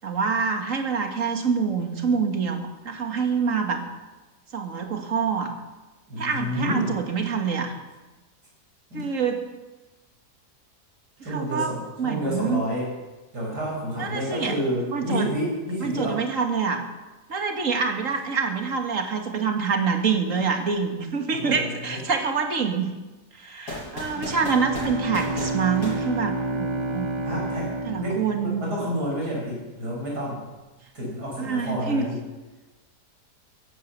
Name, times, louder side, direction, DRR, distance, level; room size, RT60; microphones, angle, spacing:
voice 1, 0.0-3.8 4.5-5.5 6.2-7.7 8.9-9.4 11.3-11.7 12.0-12.6 14.0-14.5 14.9-15.3 15.8-16.8 17.3-22.9 23.3-27.1 27.8-28.7 31.4-32.1, right 5 dB, 50° right, 5 dB, 2.2 m, -26 dB
voice 2, 6.1-7.0 8.9-9.1 11.2-12.9 13.3-16.2 21.3-22.0 27.2-30.4 30.9-32.2, equal, 75° right, -3 dB, 6.2 m, -29 dB
sound 1, 23.7-26.9, left 1 dB, 70° left, 6.9 m, -37 dB
Bowed string instrument, 24.1-29.3, right 1 dB, 20° right, 0.8 m, -30 dB
15.0 x 11.5 x 8.1 m, 1.2 s
omnidirectional pair, 1.8 m